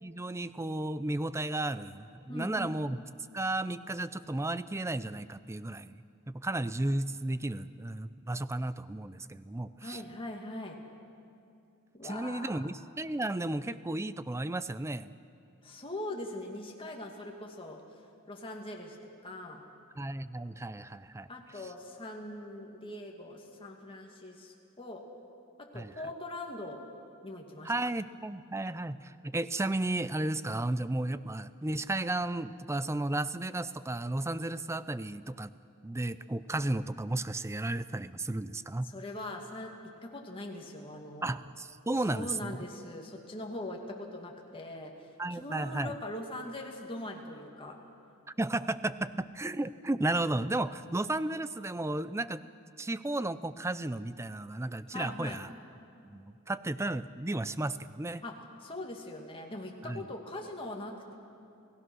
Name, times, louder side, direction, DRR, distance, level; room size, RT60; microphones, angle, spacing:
voice 1, 0.0-3.0 3.3-10.0 12.0-15.1 20.0-21.3 25.7-25.9 27.6-35.5 35.8-38.9 41.2-42.6 45.2-45.9 48.4-52.4 52.8-55.5 56.0-58.2 59.8-60.1, right 2 dB, 10° right, 14 dB, 0.5 m, -33 dB
voice 2, 2.3-2.7 9.8-10.8 12.0-12.7 15.6-17.8 18.3-19.0 19.2-19.6 21.3-25.0 25.7-26.8 27.2-27.7 38.8-39.8 40.0-41.4 42.1-44.9 45.3-47.8 54.9-55.4 58.2-61.1, left 1 dB, 25° left, 0 dB, 2.3 m, -41 dB
29.5 x 17.0 x 6.3 m, 2.7 s
head